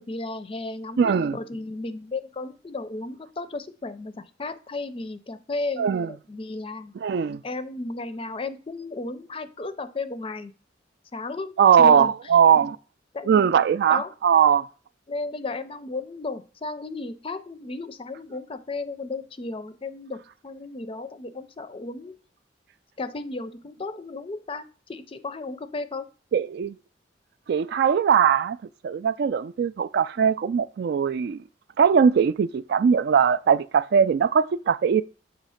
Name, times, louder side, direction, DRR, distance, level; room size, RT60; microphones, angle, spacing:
voice 1, 0.0-6.9 7.4-10.5 11.1-12.1 13.1-14.1 15.1-22.2 23.0-26.1, left 3 dB, 30° left, 0.5 m, -34 dB
voice 2, 1.0-1.4 5.8-6.1 7.0-7.4 11.6-12.8 13.3-14.6 26.3-26.7 27.5-28.6 28.8-31.4 31.8-35.0, right 7 dB, 60° right, 0.3 m, -20 dB
7.3 x 2.9 x 5.6 m
head